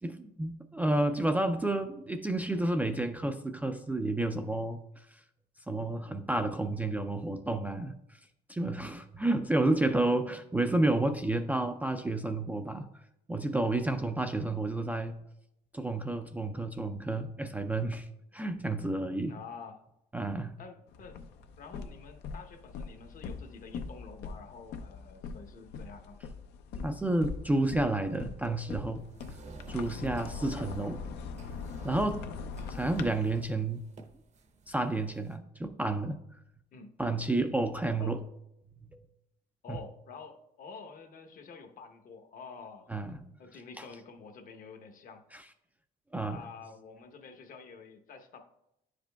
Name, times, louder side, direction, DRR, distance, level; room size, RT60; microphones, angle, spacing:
voice 1, 0.0-5.2 5.7-7.9 8.5-12.9 13.3-15.2 15.7-18.1 18.3-19.4 20.1-20.6 26.8-29.0 29.7-31.0 31.8-32.2 32.7-33.8 34.7-36.2 37.0-38.2 39.7-39.8 42.9-43.2 43.8-43.9 45.3-45.4 46.1-46.4, right 2 dB, 10° right, 7 dB, 0.3 m, -30 dB
voice 2, 19.3-19.8 20.6-21.2 21.6-26.2 30.4-30.9 36.7-36.9 38.0-38.2 39.6-42.9 43.4-45.2 46.3-48.4, left 5 dB, 55° left, 6 dB, 0.8 m, -48 dB
sound 1, 20.9-33.1, left 5 dB, 80° left, 0.6 m, -42 dB
sound 2, 29.0-35.4, right 3 dB, 45° right, 0.7 m, -53 dB
9.7 x 5.1 x 2.2 m, 0.84 s
cardioid pair, 110°, 17 cm